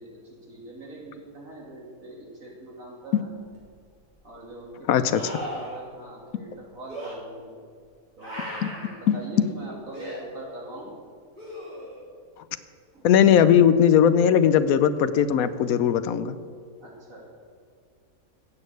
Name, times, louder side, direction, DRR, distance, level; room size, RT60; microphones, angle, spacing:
voice 1, 0.0-3.4 4.2-7.6 8.2-11.0 12.9-13.1 16.8-17.3, right 1 dB, 75° right, -2 dB, 3.1 m, -42 dB
sound 1, 3.5-3.6 5.1-5.8 6.9-7.1 8.2-9.0 9.9-10.2 11.4-12.0 15.2-15.3, equal, 35° right, 4.2 m, -36 dB
voice 2, 4.9-5.2 8.6-8.7 9.1-9.5 13.0-16.4, left 9 dB, 85° left, 13 dB, 1.1 m, -19 dB
16.0 x 6.5 x 8.1 m, 2.2 s
omnidirectional pair, 1.5 m